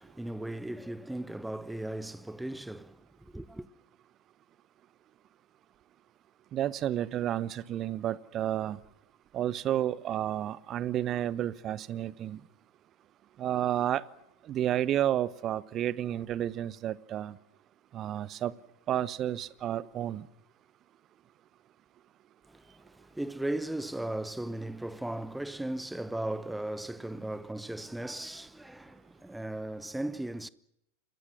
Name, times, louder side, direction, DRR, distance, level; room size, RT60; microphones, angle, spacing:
voice 1, 0.0-3.7 22.5-30.5, right 1 dB, 5° right, 0.9 m, -37 dB
voice 2, 6.5-8.8 9.3-12.4 13.4-14.0 14.5-17.3 17.9-18.5 18.9-20.2, right 11 dB, 30° right, 1.0 m, -31 dB
28.5 x 22.0 x 6.3 m
figure-of-eight pair, 90°, 0 cm